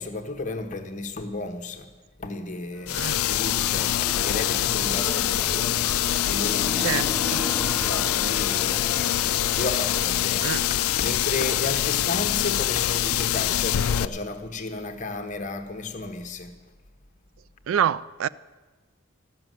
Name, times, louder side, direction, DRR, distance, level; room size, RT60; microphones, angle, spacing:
voice 1, 0.0-1.9 2.2-5.5 6.3-7.5 7.8-9.0 9.5-10.5 11.0-16.5, left 3 dB, 35° left, 1.0 m, -33 dB
sound 1, 2.8-11.6, left 1 dB, 5° left, 0.7 m, -37 dB
sound 2, 2.9-14.1, left 12 dB, 75° left, 0.4 m, -24 dB
sound 3, 6.4-7.3 7.7-7.8 8.2-10.2, left 1 dB, 45° right, 1.8 m, -49 dB
voice 2, 6.8-7.4 10.4-10.6 17.7-18.3, right 9 dB, 65° right, 0.3 m, -26 dB
14.0 x 6.9 x 9.1 m
head